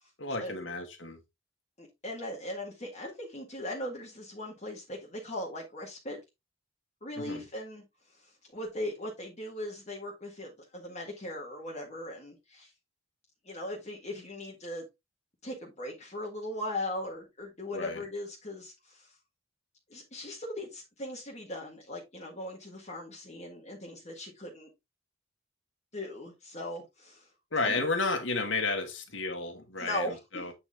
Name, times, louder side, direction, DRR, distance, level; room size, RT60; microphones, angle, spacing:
voice 1, 0.2-1.2 7.2-7.5 17.7-18.0 27.5-30.5, left 3 dB, 65° left, 1.9 m, -32 dB
voice 2, 1.8-6.2 7.0-7.8 8.2-12.7 13.4-14.8 15.4-19.1 19.9-24.7 25.9-27.3 27.6-27.8 29.8-30.4, left 1 dB, 35° left, 1.7 m, -39 dB
8.6 x 4.3 x 3.5 m
head